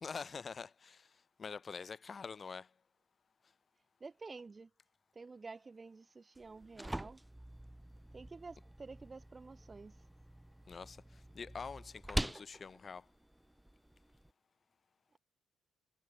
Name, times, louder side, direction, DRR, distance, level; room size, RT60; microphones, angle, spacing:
voice 1, 0.0-2.7 10.7-13.1, left 5 dB, 40° left, 0.6 m, -46 dB
voice 2, 4.0-4.7 5.1-7.2 8.1-10.0, right 4 dB, 30° right, 0.9 m, -50 dB
sound 1, 6.3-14.3, right 1 dB, 5° right, 1.7 m, -45 dB
cardioid pair, 90°, 0 cm